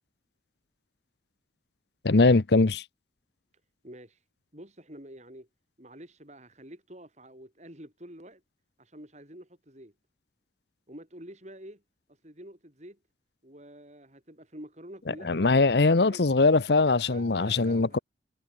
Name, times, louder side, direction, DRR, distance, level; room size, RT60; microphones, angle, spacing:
voice 1, 2.0-2.8 15.1-18.0, left 3 dB, 60° left, 0.8 m, -22 dB
voice 2, 3.8-4.2 4.5-5.5 5.8-8.4 8.8-9.9 10.9-11.8 12.2-13.0 13.4-15.5 16.0-16.2 17.1-18.0, right 1 dB, 40° right, 6.3 m, -47 dB
head